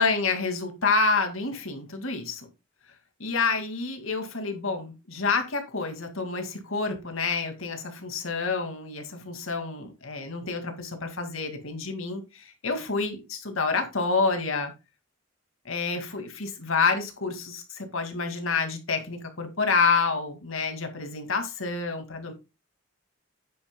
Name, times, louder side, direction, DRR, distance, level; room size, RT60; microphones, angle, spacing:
voice 1, 0.0-2.4 3.2-14.7 15.7-22.3, left 4 dB, 85° left, 2.1 m, -28 dB
9.4 x 8.7 x 2.2 m
head